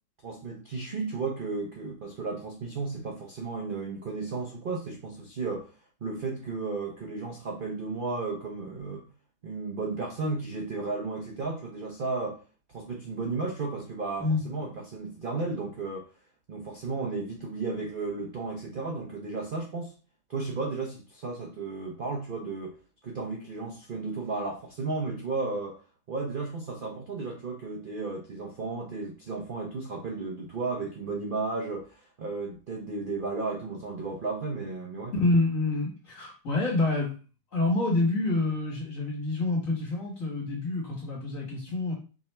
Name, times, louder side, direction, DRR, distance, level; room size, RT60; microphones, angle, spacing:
voice 1, 0.2-5.7 6.0-9.1 9.4-12.4 12.7-16.1 16.5-19.9 20.3-22.8 23.0-25.8 26.1-35.1, right 3 dB, 70° right, 0 dB, 0.5 m, -34 dB
voice 2, 35.1-37.1 37.5-41.9, left 2 dB, 45° left, -3 dB, 1.9 m, -27 dB
4.8 x 2.9 x 3.3 m, 0.35 s
omnidirectional pair, 1.9 m